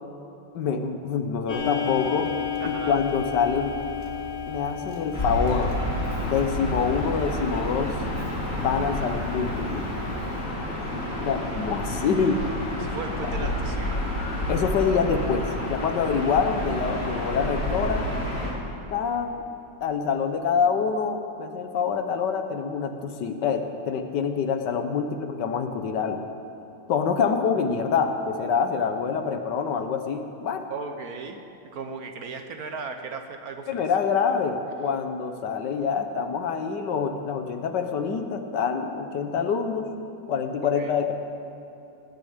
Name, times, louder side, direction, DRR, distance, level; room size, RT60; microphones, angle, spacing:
voice 1, 0.5-2.3 2.6-3.8 4.5-5.7 6.2-7.9 8.5-9.8 10.6-10.7 11.2-12.4 13.4-13.5 14.5-18.1 18.9-19.4 19.8-26.2 26.9-30.6 33.7-39.9 40.3-41.1, left 6 dB, 70° left, 7 dB, 1.5 m, -26 dB
Clock, 1.5-10.4, left 7 dB, 25° left, 1.4 m, -34 dB
voice 2, 2.6-3.0 12.8-13.9 30.7-31.4 31.7-33.8 40.6-41.0, right 4 dB, 60° right, 6 dB, 1.2 m, -36 dB
Gull seagull / Ocean, 5.1-18.5, left 1 dB, 45° left, 3.1 m, -29 dB
19.0 x 6.7 x 8.8 m, 2.9 s
omnidirectional pair, 2.0 m